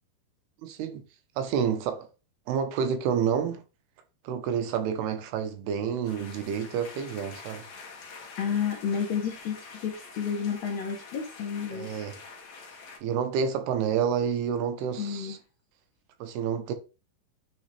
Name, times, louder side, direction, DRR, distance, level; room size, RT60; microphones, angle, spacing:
voice 1, 0.6-1.0 1.4-2.1 2.5-3.6 4.2-7.6 11.7-12.1 13.0-15.4 16.2-16.7, right 7 dB, 80° right, 2.9 m, -29 dB
sound 1, 6.0-13.0, left 4 dB, 55° left, 2.1 m, -46 dB
voice 2, 8.4-11.9 15.0-15.4, left 7 dB, 85° left, 1.5 m, -31 dB
9.8 x 3.9 x 3.2 m
omnidirectional pair, 4.6 m